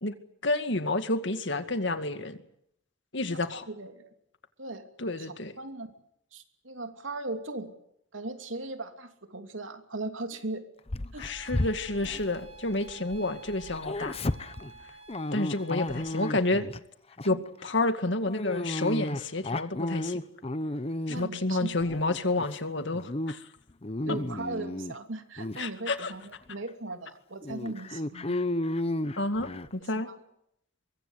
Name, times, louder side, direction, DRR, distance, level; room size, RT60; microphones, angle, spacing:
voice 1, 0.4-2.4 3.1-3.6 5.0-5.5 11.2-14.2 15.3-16.7 17.2-20.2 21.1-23.4 25.6-26.1 29.2-30.1, left 2 dB, 65° left, 9 dB, 2.2 m, -30 dB
voice 2, 3.7-4.0 4.6-4.9 5.2-5.9 6.3-7.7 8.1-10.6 11.1-11.3 17.3-17.4 21.1-21.7 24.1-28.5 29.9-30.2, right 2 dB, 80° right, 6 dB, 2.9 m, -38 dB
Dog, 10.9-13.2 13.5-16.8 17.2-17.5 18.3-21.4 21.8-22.5 22.9-23.3 23.7-25.0 25.4-25.6 26.2-26.3 26.7-26.8 27.4-29.7, left 1 dB, 30° left, 0.9 m, -33 dB
sound 1, 11.3-16.3, right 4 dB, 30° right, 5.7 m, -51 dB
24.0 x 23.0 x 8.1 m, 0.74 s
head